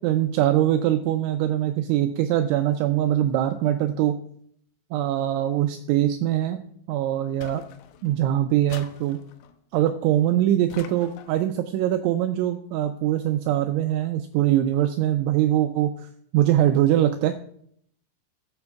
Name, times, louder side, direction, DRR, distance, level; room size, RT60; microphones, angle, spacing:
voice 1, 0.0-4.2 4.9-6.6 6.9-7.6 8.0-9.2 9.7-15.9 16.3-17.3, right 12 dB, 85° right, 7 dB, 2.8 m, -22 dB
sound 1, 7.4-8.2 8.7-9.6 10.7-11.5, left 10 dB, 90° left, 3.5 m, -45 dB
14.5 x 8.9 x 2.4 m, 0.63 s
omnidirectional pair, 5.9 m